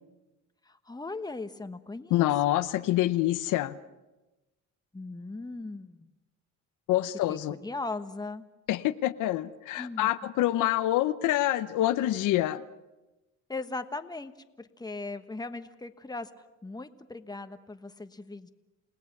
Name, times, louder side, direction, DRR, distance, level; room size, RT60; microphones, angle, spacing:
voice 1, 0.6-2.6 4.9-6.1 7.3-8.4 9.8-10.3 13.5-14.3 14.6-18.5, left 3 dB, 15° left, 1.3 m, -39 dB
voice 2, 2.1-3.7 6.9-7.6 8.7-12.6, left 14 dB, 90° left, 0.8 m, -26 dB
29.0 x 18.0 x 6.0 m
cardioid pair, 90°, 30 cm